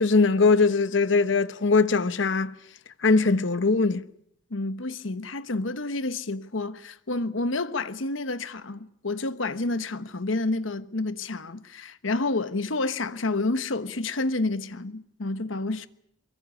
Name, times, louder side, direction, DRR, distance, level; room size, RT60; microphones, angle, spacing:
voice 1, 0.0-2.5 3.0-4.0, left 4 dB, 70° left, 0.9 m, -21 dB
voice 2, 4.5-15.9, left 2 dB, 85° left, 1.2 m, -29 dB
23.5 x 22.5 x 8.4 m
head